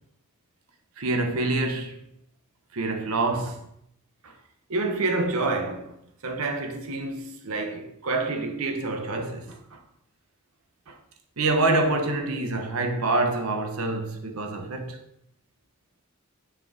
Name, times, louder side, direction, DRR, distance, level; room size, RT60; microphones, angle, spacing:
voice 1, 1.0-2.0 2.7-3.7 4.2-4.3 4.7-6.0 6.2-9.8 10.9-11.0 11.4-15.0, right 2 dB, 85° right, 0.7 m, -27 dB
7.2 x 3.7 x 3.5 m
head